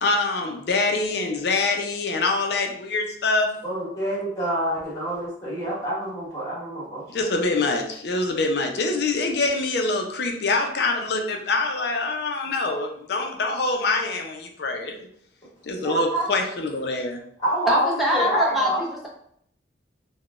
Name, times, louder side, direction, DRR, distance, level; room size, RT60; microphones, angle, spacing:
voice 1, 0.0-3.5 7.1-15.1 15.6-17.2, left 3 dB, 60° left, 3 dB, 0.5 m, -25 dB
voice 2, 3.6-7.0 15.8-16.3 17.4-18.8, right 1 dB, 20° left, -7 dB, 1.4 m, -27 dB
voice 3, 17.7-19.1, equal, ahead, -4 dB, 0.6 m, -23 dB
3.7 x 2.1 x 2.4 m, 0.67 s
head